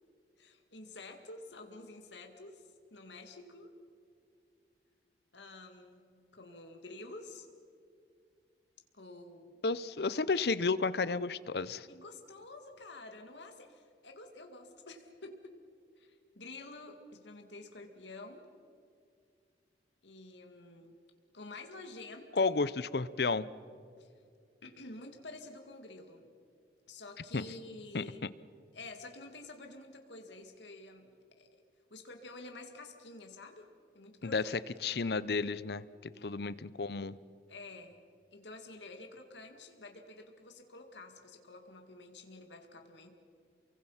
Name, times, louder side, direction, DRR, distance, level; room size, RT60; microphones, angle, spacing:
voice 1, 0.4-3.7 5.3-7.5 8.9-9.6 11.9-15.5 16.0-18.4 20.0-21.0 21.3-22.6 24.0-24.1 24.6-26.3 26.9-28.3 28.7-31.5 31.9-33.6 33.9-34.6 36.1-36.5 37.5-38.0 38.3-43.1, left 2 dB, 85° left, 4 dB, 2.2 m, -49 dB
voice 2, 9.6-11.9 22.4-23.5 27.3-27.4 27.9-28.3 34.2-34.4 34.8-37.1, left 4 dB, 65° left, 17 dB, 0.7 m, -32 dB
29.0 x 23.5 x 5.7 m, 2.3 s
head